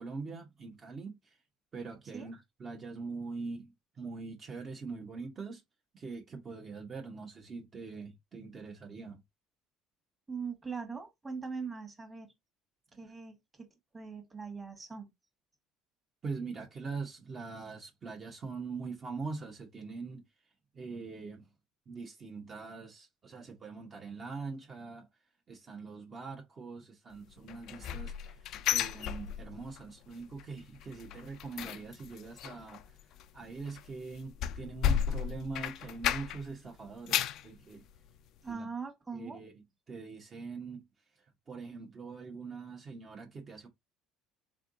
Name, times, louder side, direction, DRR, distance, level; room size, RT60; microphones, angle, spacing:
voice 1, 0.0-1.4 1.7-5.6 5.9-9.2 16.2-20.3 20.7-21.5 21.9-25.1 25.5-28.4 28.7-32.8 33.3-37.8 38.5-38.7 39.1-39.5 39.9-40.8 41.5-43.7, right 4 dB, 35° right, 1.1 m, -43 dB
voice 2, 10.3-12.3 12.9-13.7 13.9-15.1 38.4-39.4, right 5 dB, 20° right, 1.5 m, -41 dB
sound 1, 27.5-29.8 30.1-30.5 30.7-36.5 36.9-37.5 38.0-38.1 38.5-38.6, left 9 dB, 60° left, 0.4 m, -34 dB
3.7 x 3.4 x 2.7 m
supercardioid pair, 105°, 0 cm